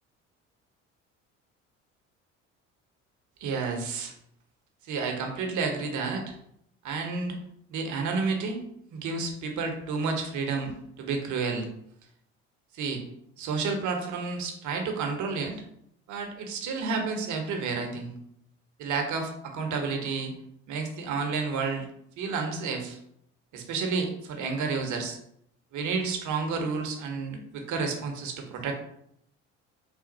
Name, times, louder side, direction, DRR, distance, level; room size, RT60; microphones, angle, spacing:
voice 1, 3.4-4.1 4.9-6.3 6.8-7.4 7.7-8.6 8.9-10.7 11.0-11.7 12.7-13.0 13.4-15.6 16.1-18.1 18.8-20.3 20.7-21.8 22.2-23.0 23.5-25.2 25.7-28.8, right 4 dB, 55° right, 3 dB, 0.9 m, -30 dB
3.4 x 2.2 x 3.9 m, 0.72 s
hypercardioid pair, 65°, 35 cm